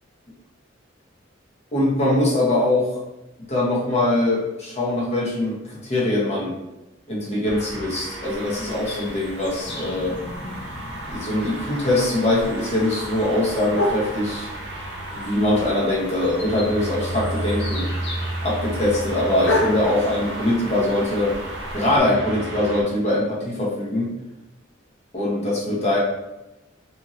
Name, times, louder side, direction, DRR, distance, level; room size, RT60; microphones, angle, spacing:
voice 1, 1.7-3.0 3.5-6.6 7.1-10.2 11.1-14.5 15.1-17.9 18.4-21.4 21.7-24.1 25.1-26.0, left 1 dB, 35° left, -4 dB, 0.8 m, -22 dB
sound 1, 7.4-22.8, right 1 dB, 75° right, 0.7 m, -33 dB
sound 2, 8.2-22.0, left 1 dB, 55° left, 0.5 m, -33 dB
2.6 x 2.6 x 2.9 m, 0.98 s
head